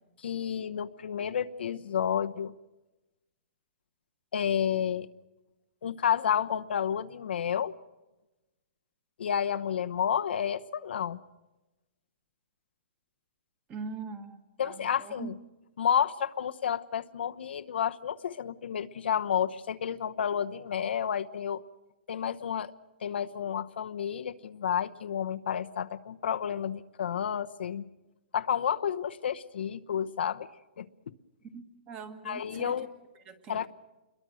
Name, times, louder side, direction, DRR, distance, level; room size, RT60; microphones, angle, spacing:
voice 1, 0.2-2.5 4.3-5.1 5.8-7.7 9.2-11.2 14.6-15.4 15.8-21.6 22.1-22.7 23.0-27.9 28.3-30.5 30.8-30.9 32.2-32.9 33.5-33.7, left 8 dB, 65° left, 9 dB, 1.0 m, -30 dB
voice 2, 13.7-14.7 15.0-15.3 31.5-32.7 33.3-33.7, right 5 dB, 15° right, 10 dB, 1.7 m, -42 dB
28.5 x 22.5 x 6.3 m, 1.1 s
hypercardioid pair, 175°, 6 cm